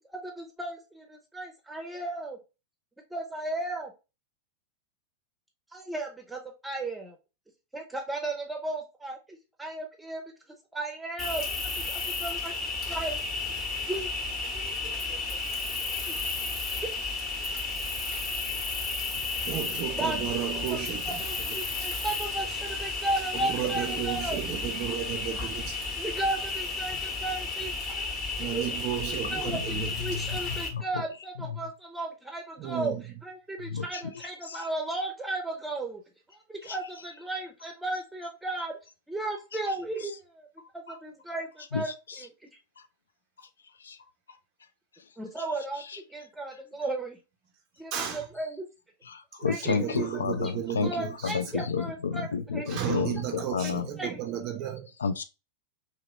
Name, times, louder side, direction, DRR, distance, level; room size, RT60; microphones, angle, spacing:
voice 1, 0.1-2.4 3.1-3.9 5.7-7.2 7.7-10.2 10.7-12.5 12.9-13.2 13.8-14.1 14.5-15.2 16.1-16.2 16.7-17.0 20.0-20.2 20.7-20.8 21.2-24.4 26.0-28.1 28.5-28.7 29.3-33.0 33.2-36.0 36.5-38.8 39.1-40.5 40.7-41.9 45.2-45.8 46.1-47.2 47.8-48.7 49.5-50.2 50.8-52.3 52.5-52.8 53.6-53.7 54.0-54.2, right 2 dB, 5° right, 0.7 m, -35 dB
Cricket, 11.2-30.7, left 3 dB, 35° left, 1.1 m, -33 dB
voice 2, 19.5-21.2 23.3-25.8 28.4-29.9 32.6-33.0 47.9-48.2 49.4-51.3 51.6-51.7 52.7-54.9, right 10 dB, 40° right, 0.5 m, -33 dB
voice 3, 29.2-31.0 31.4-31.7 33.6-35.0 36.6-36.8 39.5-40.2 40.6-41.0 41.7-42.3 42.8-42.9 43.4-43.5 43.8-44.0 44.3-44.4 44.9-45.1 45.4-45.5 45.8-46.0 46.5-46.6 49.0-53.9 55.0-55.2, left 5 dB, 70° left, 0.3 m, -33 dB
2.9 x 2.9 x 2.8 m
figure-of-eight pair, 90°, 0 cm